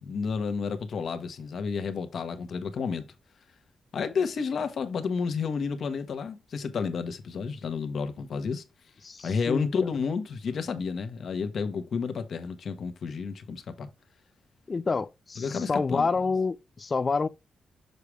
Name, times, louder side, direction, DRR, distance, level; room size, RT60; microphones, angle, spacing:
voice 1, 0.0-3.1 3.9-8.6 9.2-13.9 15.4-16.1, left 5 dB, 65° left, 1.2 m, -31 dB
voice 2, 9.0-9.9 14.7-17.3, left 4 dB, 35° left, 0.4 m, -28 dB
6.7 x 4.8 x 3.2 m
cardioid pair, 110°, 0 cm